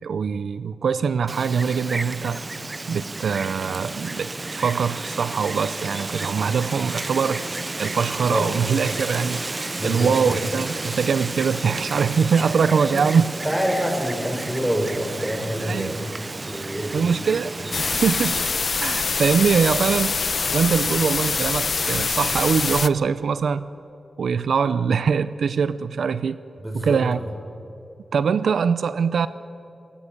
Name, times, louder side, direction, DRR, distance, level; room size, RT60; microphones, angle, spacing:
voice 1, 0.0-2.4 2.9-7.5 7.8-9.4 9.8-13.3 15.6-16.1 16.9-18.4 18.8-20.2 20.5-23.7 24.2-26.4 26.7-27.2 28.1-29.3, right 6 dB, 85° right, 14 dB, 0.5 m, -23 dB
Wind, 1.3-18.5, right 2 dB, 30° right, 0.5 m, -32 dB
voice 2, 9.8-10.3 12.7-13.1 13.4-15.9 16.5-17.2 26.6-27.0, equal, 10° right, 4 dB, 4.8 m, -26 dB
sound 1, 17.7-22.9, left 4 dB, 55° left, 0.7 m, -24 dB
20.0 x 19.5 x 8.6 m, 2.7 s
cardioid pair, 65°, 0 cm